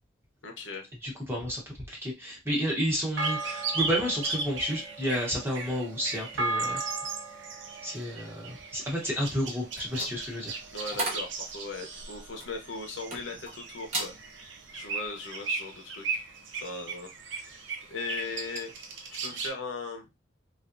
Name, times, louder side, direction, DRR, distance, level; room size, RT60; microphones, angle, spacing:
voice 1, 0.4-0.9 10.7-14.1 14.7-16.2 16.6-18.7 19.2-20.1, left 3 dB, 75° left, 3 dB, 0.8 m, -38 dB
voice 2, 1.0-1.6 1.9-6.8 7.8-10.5, equal, 10° right, -2 dB, 1.1 m, -31 dB
sound 1, 3.2-19.5, right 4 dB, 75° right, 0.6 m, -36 dB
sound 2, 9.7-13.5 13.8-14.2 14.6-14.9, right 2 dB, 35° right, 1.0 m, -36 dB
3.3 x 2.5 x 2.6 m, 0.23 s
head